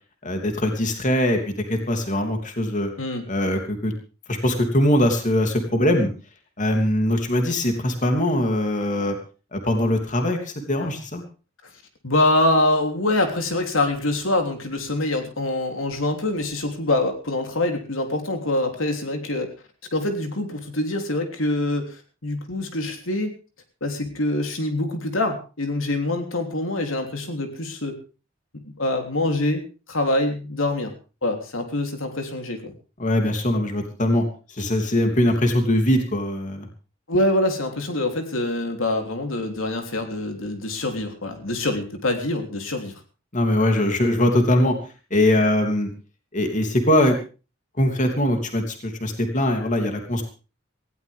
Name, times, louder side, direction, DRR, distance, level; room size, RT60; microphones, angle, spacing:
voice 1, 0.2-2.9 3.3-3.9 4.3-6.1 6.6-9.2 9.5-11.2 33.0-34.2 34.6-36.7 43.3-44.8 45.1-45.9 46.3-47.2 47.8-50.2, left 1 dB, 40° left, 4 dB, 3.0 m, -21 dB
voice 2, 12.0-19.5 19.9-23.3 23.8-28.0 28.7-29.6 29.9-30.9 31.2-32.7 37.1-42.9, left 1 dB, 75° left, 4 dB, 3.4 m, -25 dB
19.0 x 16.5 x 3.6 m, 0.35 s
head